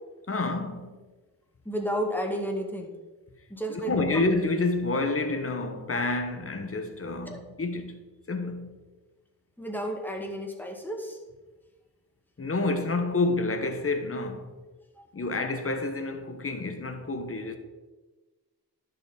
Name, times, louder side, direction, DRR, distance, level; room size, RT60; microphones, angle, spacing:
voice 1, 0.3-0.9 3.7-8.8 12.4-14.6 15.1-17.6, left 3 dB, 35° left, 1.3 m, -29 dB
voice 2, 1.7-3.0 3.5-4.2 7.3-7.4 9.6-11.2 15.0-15.1, equal, 5° left, 2.0 m, -32 dB
11.0 x 6.9 x 4.1 m
cardioid pair, 60°, 37 cm